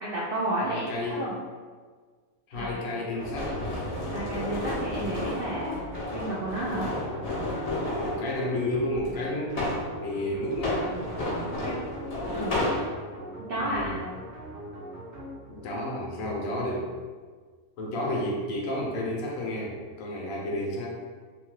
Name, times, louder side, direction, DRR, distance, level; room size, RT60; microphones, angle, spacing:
voice 1, 0.0-1.3 2.6-2.7 4.1-5.8 6.1-6.9 11.4-11.7 12.2-12.6 13.4-13.9, right 1 dB, 75° right, -6 dB, 0.5 m, -32 dB
voice 2, 0.6-1.2 2.5-3.5 7.0-7.2 8.0-9.7 10.0-11.1 13.6-14.1 15.5-16.9 17.8-21.0, left 1 dB, 70° left, -2 dB, 1.0 m, -31 dB
sound 1, 2.5-15.8, equal, 55° right, 0.9 m, -42 dB
sound 2, 3.2-8.2 9.1-9.9 10.5-12.8, left 1 dB, 45° left, 0.5 m, -31 dB
2.8 x 2.2 x 3.0 m, 1.5 s
omnidirectional pair, 1.6 m